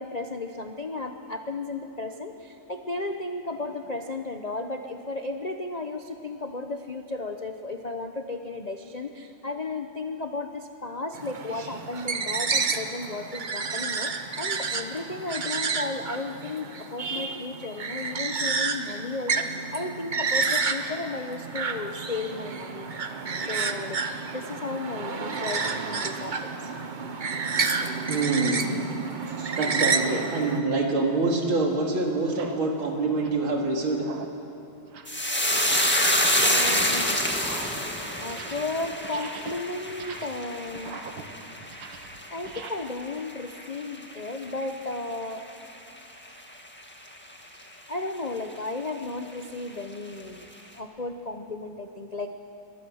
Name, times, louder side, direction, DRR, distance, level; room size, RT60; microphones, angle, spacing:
voice 1, 0.0-23.1 23.4-24.0 24.3-26.7 36.4-37.2 38.2-41.0 42.3-45.4 47.9-50.5 50.7-52.3, left 3 dB, 75° left, 5 dB, 0.3 m, -34 dB
sound 1, 11.1-30.6, right 4 dB, 40° right, 0.6 m, -30 dB
voice 2, 28.1-28.8 29.3-34.0, right 3 dB, 85° right, 1 dB, 3.4 m, -26 dB
sound 2, 30.7-30.8 31.5-31.6 32.2-32.6 33.0-33.5 33.9-34.4 34.8-35.2 35.6-36.2 36.4-37.0 37.3-38.7 39.0-42.7, right 5 dB, 70° right, 2.0 m, -43 dB
sound 3, 35.1-43.7 44.0-44.6 44.9-45.1, left 1 dB, 5° left, 1.4 m, -27 dB
23.5 x 22.0 x 6.4 m, 2.8 s
omnidirectional pair, 2.2 m